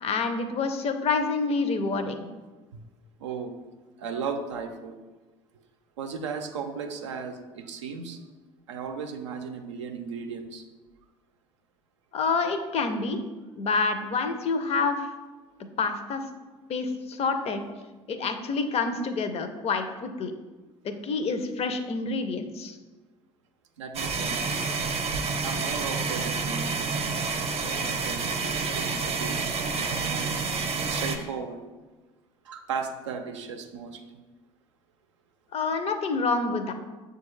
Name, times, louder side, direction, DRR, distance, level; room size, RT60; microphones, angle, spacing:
voice 1, 0.0-2.3 12.1-13.2 13.6-15.0 15.8-16.2 16.7-17.6 18.1-20.3 20.8-22.8 35.5-36.7, left 4 dB, 45° left, 8 dB, 0.5 m, -27 dB
voice 2, 3.2-3.5 4.0-4.9 6.0-8.2 8.7-10.6 23.8-24.5 25.4-26.9 27.5-30.3 30.6-31.6 32.5-34.0, right 5 dB, 85° right, 5 dB, 0.4 m, -36 dB
sound 1, 23.9-31.2, right 4 dB, 45° right, 0.6 m, -29 dB
6.7 x 2.3 x 3.1 m, 1.2 s
hypercardioid pair, 65°, 15 cm